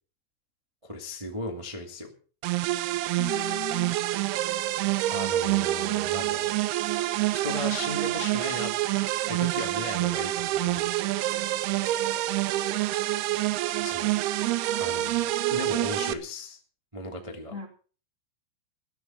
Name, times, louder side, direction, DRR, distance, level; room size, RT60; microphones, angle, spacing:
voice 1, 0.8-2.1 5.1-6.5 7.3-8.7 9.3-10.9 13.8-14.1 14.8-16.6 16.9-17.5, left 1 dB, 30° right, 2 dB, 0.5 m, -36 dB
sound 1, 2.4-16.1, right 15 dB, 90° right, 2.2 m, -27 dB
voice 2, 3.2-4.4 17.5-17.7, left 5 dB, 55° left, 2 dB, 0.8 m, -39 dB
15.5 x 12.0 x 5.8 m, 0.40 s
omnidirectional pair, 5.7 m